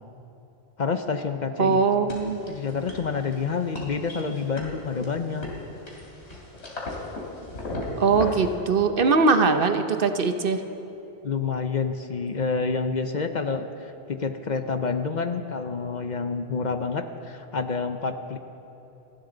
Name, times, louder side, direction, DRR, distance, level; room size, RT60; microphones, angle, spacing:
voice 1, 0.8-2.2 2.4-5.5 11.2-18.4, left 5 dB, 50° left, 8 dB, 0.7 m, -28 dB
voice 2, 1.6-2.4 8.0-10.6, right 4 dB, 60° right, 7 dB, 1.0 m, -21 dB
sound 1, 2.1-8.5, left 2 dB, 85° left, 3.3 m, -37 dB
29.0 x 11.5 x 3.9 m, 3.0 s
omnidirectional pair, 1.1 m